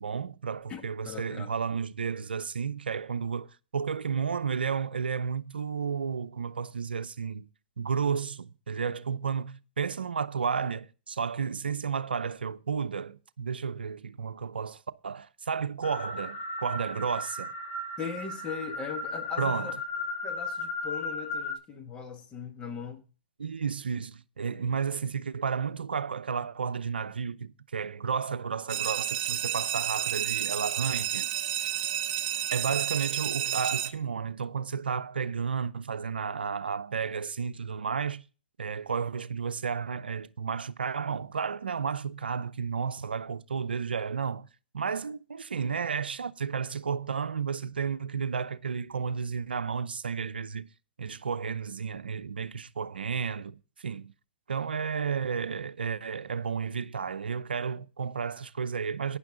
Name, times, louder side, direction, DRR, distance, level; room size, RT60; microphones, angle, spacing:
voice 1, 0.0-7.5 7.8-17.5 19.4-19.7 23.4-31.3 32.5-38.2 38.6-44.5 44.7-50.7 51.0-54.1 54.5-59.2, right 6 dB, 85° right, 0.7 m, -32 dB
voice 2, 0.7-1.5 18.0-19.7 20.2-23.0, left 6 dB, 20° left, 1.9 m, -39 dB
sound 1, 15.8-21.6, left 2 dB, 45° left, 2.3 m, -35 dB
sound 2, 28.7-33.9, right 11 dB, 40° right, 1.2 m, -31 dB
12.0 x 9.7 x 3.9 m
hypercardioid pair, 130°, 5 cm